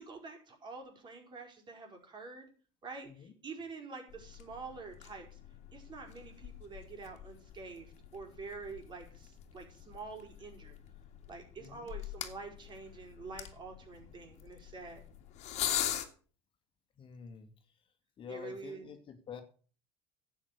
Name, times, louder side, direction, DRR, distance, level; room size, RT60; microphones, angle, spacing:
voice 1, 0.0-2.5 2.8-5.4 5.7-10.8 11.3-15.0 18.3-18.9, right 4 dB, 35° right, 3 dB, 5.1 m, -47 dB
sound 1, 4.1-16.1, left 11 dB, 55° left, 2.1 m, -43 dB
voice 2, 11.6-11.9 17.0-17.5 18.2-19.4, left 7 dB, 40° left, 7 dB, 2.1 m, -48 dB
11.5 x 8.5 x 6.6 m, 0.41 s
supercardioid pair, 100°, 14 cm